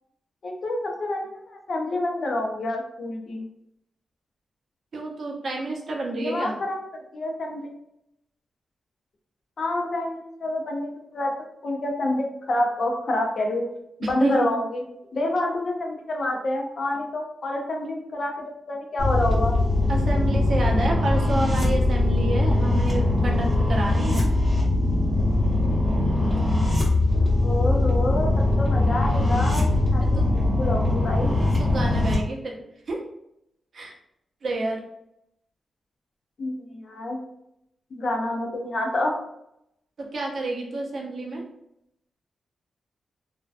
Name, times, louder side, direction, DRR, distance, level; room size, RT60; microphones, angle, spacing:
voice 1, 0.4-3.5 6.1-6.8 7.1-7.7 9.6-11.3 11.6-13.7 14.0-14.8 15.1-19.6 27.4-31.3 36.4-37.2 37.9-39.2, left 1 dB, 45° left, 1 dB, 0.5 m, -28 dB
voice 2, 4.9-6.5 14.2-14.5 19.9-24.3 30.0-30.3 31.6-32.6 32.9-33.0 33.7-33.9 34.4-34.8 40.0-41.4, right 2 dB, 50° right, 0 dB, 0.5 m, -29 dB
sound 1, 19.0-32.1, left 2 dB, 5° right, 0.9 m, -21 dB
2.5 x 2.1 x 2.3 m, 0.79 s
wide cardioid pair, 145°, 0 cm